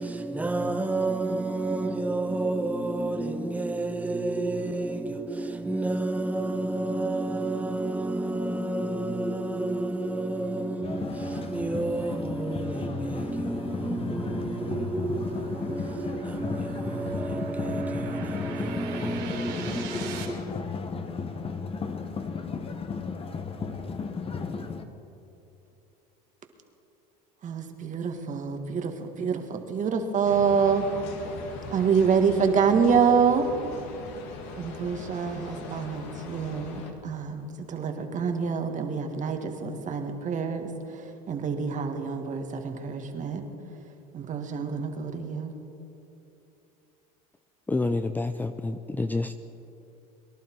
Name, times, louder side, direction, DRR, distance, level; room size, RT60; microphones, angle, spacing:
voice 1, 0.0-20.4, right 2 dB, 5° right, 1.1 m, -30 dB
sound 1, 10.8-24.8, left 5 dB, 30° left, 1.2 m, -34 dB
sound 2, 13.4-20.2, right 8 dB, 60° right, 3.8 m, -44 dB
voice 2, 27.4-30.9 31.7-33.5 34.6-43.4 44.1-45.5, right 6 dB, 40° right, 1.8 m, -26 dB
sound 3, 30.2-36.9, left 4 dB, 75° left, 1.9 m, -40 dB
voice 3, 47.7-49.3, left 2 dB, 10° left, 0.5 m, -28 dB
23.0 x 11.5 x 4.6 m
supercardioid pair, 95°, 20 cm